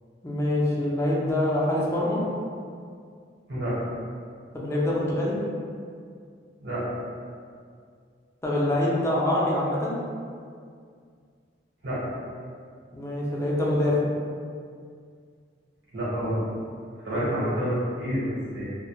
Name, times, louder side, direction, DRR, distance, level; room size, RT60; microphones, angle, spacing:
voice 1, 0.2-2.2 4.5-5.4 8.4-10.0 12.9-14.1 17.1-17.4, left 1 dB, 15° left, -5 dB, 0.4 m, -25 dB
voice 2, 15.9-16.4 17.0-18.7, equal, 80° right, -9 dB, 1.0 m, -28 dB
2.1 x 2.0 x 2.9 m, 2.2 s
head